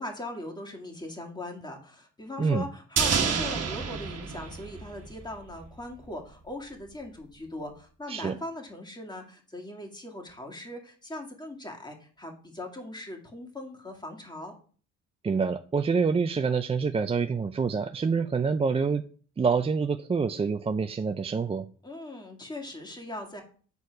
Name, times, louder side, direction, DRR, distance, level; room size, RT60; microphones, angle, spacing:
voice 1, 0.0-14.5 21.8-23.4, left 1 dB, 15° left, 2 dB, 2.1 m, -40 dB
sound 1, 3.0-5.3 5.6-5.7, right 6 dB, 55° right, 1.4 m, -29 dB
voice 2, 15.2-19.0 19.4-21.7, right 5 dB, 20° right, 8 dB, 0.4 m, -26 dB
8.2 x 4.3 x 4.7 m, 0.42 s
cardioid pair, 90°, 30 cm